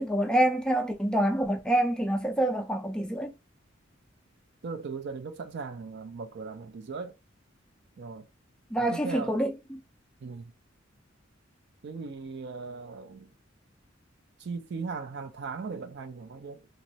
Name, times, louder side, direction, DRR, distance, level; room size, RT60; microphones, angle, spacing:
voice 1, 0.0-3.3 8.7-9.8, right 1 dB, 5° left, 0.4 m, -26 dB
voice 2, 4.6-7.2 8.0-8.3 8.8-9.4 10.2-10.5 11.8-13.3 14.4-16.7, right 4 dB, 60° right, 0.4 m, -38 dB
2.9 x 2.3 x 2.7 m
head